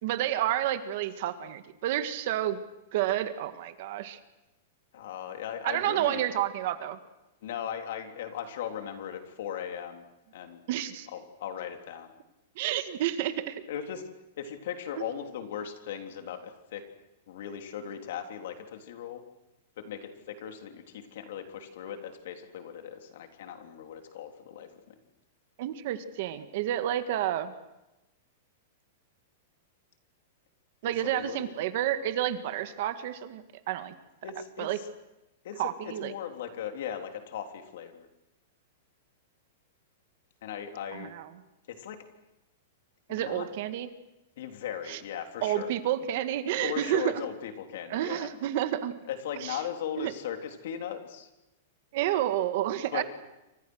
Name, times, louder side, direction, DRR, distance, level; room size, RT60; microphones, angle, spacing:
voice 1, 0.0-2.6 2.9-4.2 5.6-7.0 10.7-11.1 12.6-13.6 15.0-15.1 25.6-27.5 30.8-33.9 34.6-34.8 35.6-36.1 40.9-41.3 43.1-43.9 44.9-45.0 45.4-47.3 47.9-48.9 49.4-49.6 50.0-50.1 51.9-53.0, right 12 dB, 45° right, 10 dB, 1.7 m, -30 dB
voice 2, 4.9-6.2 7.4-10.0 10.3-10.6 11.1-12.1 13.7-14.0 14.4-16.8 17.3-19.2 19.8-25.0 30.9-31.5 34.2-34.7 35.4-38.1 40.4-41.1 41.8-42.0 43.1-43.4 44.4-45.7 46.6-48.3 49.1-51.3 52.9-53.0, left 9 dB, 55° left, 5 dB, 3.5 m, -38 dB
28.5 x 25.0 x 6.4 m, 0.97 s
supercardioid pair, 175°, 0 cm